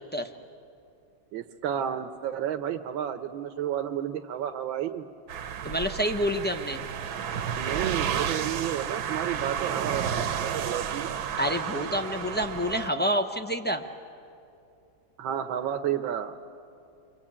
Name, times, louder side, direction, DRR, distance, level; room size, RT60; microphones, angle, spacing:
voice 1, 1.3-5.1 7.6-11.1 15.2-16.3, right 10 dB, 80° right, 6 dB, 1.6 m, -31 dB
sound 1, 5.3-12.9, right 8 dB, 60° right, 1.2 m, -31 dB
voice 2, 5.6-6.8 11.4-13.8, equal, 15° left, 3 dB, 0.3 m, -28 dB
29.0 x 23.5 x 8.7 m, 2.5 s
omnidirectional pair, 2.1 m